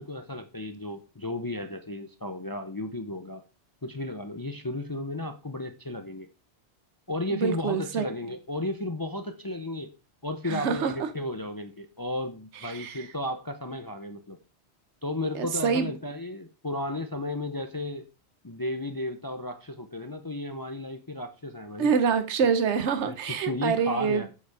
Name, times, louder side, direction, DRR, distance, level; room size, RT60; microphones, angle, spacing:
voice 1, 0.0-3.4 3.8-6.3 7.1-9.9 10.2-14.4 15.0-18.1 18.4-21.9 23.1-24.3, left 1 dB, 20° left, 0.7 m, -34 dB
voice 2, 7.3-8.1 10.4-10.9 12.6-13.0 15.3-15.9 21.8-24.3, right 6 dB, 75° right, 1.2 m, -26 dB
7.8 x 6.8 x 4.8 m
omnidirectional pair, 1.2 m